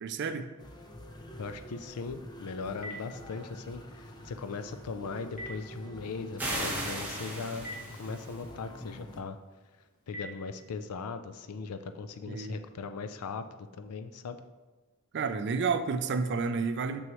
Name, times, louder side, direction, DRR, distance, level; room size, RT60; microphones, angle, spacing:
voice 1, 0.0-0.5 12.3-12.6 15.1-17.0, right 5 dB, 50° right, 10 dB, 0.4 m, -30 dB
sound 1, 0.6-9.2, equal, 20° left, 0.5 m, -47 dB
voice 2, 1.4-7.7 8.0-9.4 10.1-13.4 13.7-14.4, left 4 dB, 80° left, 9 dB, 0.4 m, -39 dB
Telephone, 2.1-11.0, left 1 dB, 40° left, 1.3 m, -50 dB
sound 2, 6.4-8.4, right 1 dB, 10° right, 1.3 m, -36 dB
6.2 x 6.2 x 3.0 m, 1.2 s
head